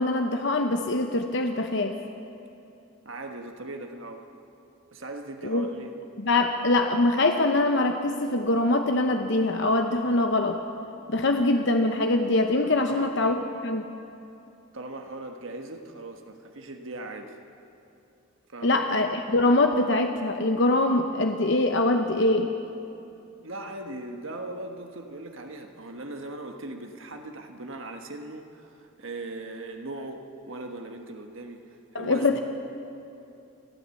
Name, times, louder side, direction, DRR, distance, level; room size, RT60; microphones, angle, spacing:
voice 1, 0.0-2.0 5.4-5.6 6.2-10.6 11.1-13.9 18.6-22.5 31.9-32.4, left 2 dB, 55° left, 5 dB, 0.9 m, -23 dB
voice 2, 3.0-4.3 4.9-6.0 12.8-13.2 14.7-17.4 18.5-18.8 23.4-32.4, right 2 dB, 65° right, 4 dB, 1.4 m, -39 dB
29.0 x 11.0 x 8.4 m, 2.8 s
head